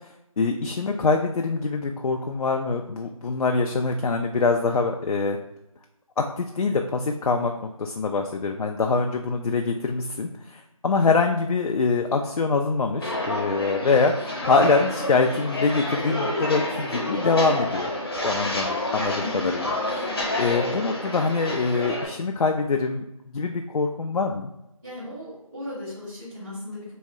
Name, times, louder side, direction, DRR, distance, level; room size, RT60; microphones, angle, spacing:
voice 1, 0.4-5.4 6.2-20.0 20.4-23.0 23.3-24.5, left 4 dB, 80° left, 3 dB, 0.4 m, -24 dB
Walk footsteps, 13.0-22.1, left 1 dB, 40° left, 0.7 m, -29 dB
voice 2, 24.8-26.9, left 1 dB, 20° right, -18 dB, 1.4 m, -36 dB
3.1 x 2.7 x 3.5 m, 0.89 s
figure-of-eight pair, 175°, 18 cm